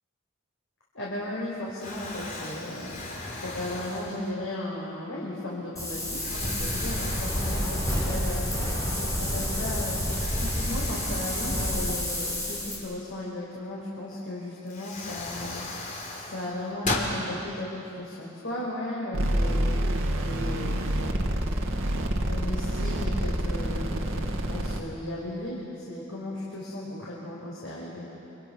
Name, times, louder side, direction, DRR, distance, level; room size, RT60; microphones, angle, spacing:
voice 1, 0.9-15.7 16.3-19.8 20.2-21.3 22.2-28.1, left 1 dB, 70° left, -6 dB, 5.1 m, -36 dB
Explosion, 1.1-1.5 1.8-4.6 5.2-5.4 6.1-8.4 8.7-8.8 10.0-12.7 14.1-14.2 14.7-17.2, left 2 dB, 40° left, 3.1 m, -37 dB
Wind, 5.8-12.8, equal, 15° left, 6.4 m, -29 dB
sound 1, 19.1-24.8, right 1 dB, 75° right, 2.1 m, -27 dB
30.0 x 27.0 x 6.1 m, 3.0 s
head